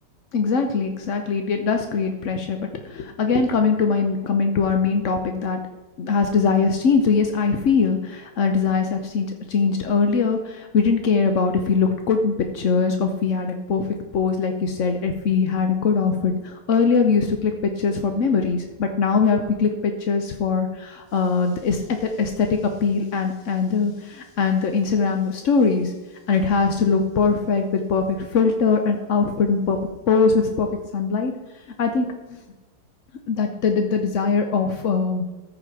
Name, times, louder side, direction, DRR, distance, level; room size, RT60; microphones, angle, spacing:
voice 1, 0.3-5.6 6.0-25.9 26.3-29.8 30.1-30.7 30.9-31.3 31.8-32.4 33.3-35.3, left 5 dB, 70° left, 5 dB, 0.7 m, -21 dB
14.0 x 5.2 x 4.7 m, 1.1 s
omnidirectional pair, 2.3 m